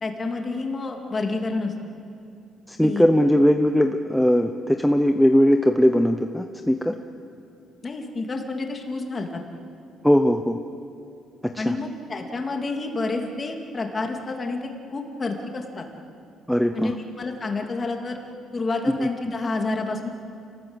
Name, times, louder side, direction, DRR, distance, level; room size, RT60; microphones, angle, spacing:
voice 1, 0.0-1.7 2.8-3.1 7.8-9.4 11.6-15.9 16.7-18.2 18.5-20.1, left 3 dB, 25° left, 2 dB, 2.6 m, -29 dB
voice 2, 2.7-6.9 10.0-10.6 11.5-11.7 16.5-16.9 19.0-19.1, equal, ahead, 5 dB, 0.7 m, -19 dB
29.5 x 19.0 x 8.1 m, 2.5 s
cardioid pair, 160°, 0 cm